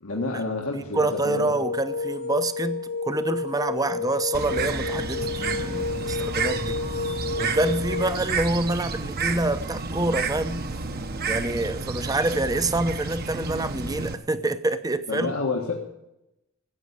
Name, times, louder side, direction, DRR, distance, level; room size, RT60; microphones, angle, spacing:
voice 1, 0.0-1.5 15.1-15.8, left 3 dB, 75° left, 1.6 m, -29 dB
voice 2, 0.7-6.8 7.4-10.6 11.3-15.3, right 2 dB, 15° right, 0.7 m, -27 dB
sound 1, 1.0-8.1, left 4 dB, 45° left, 1.4 m, -31 dB
Bird, 4.3-14.1, right 4 dB, 45° right, 1.0 m, -31 dB
14.5 x 8.5 x 8.1 m
head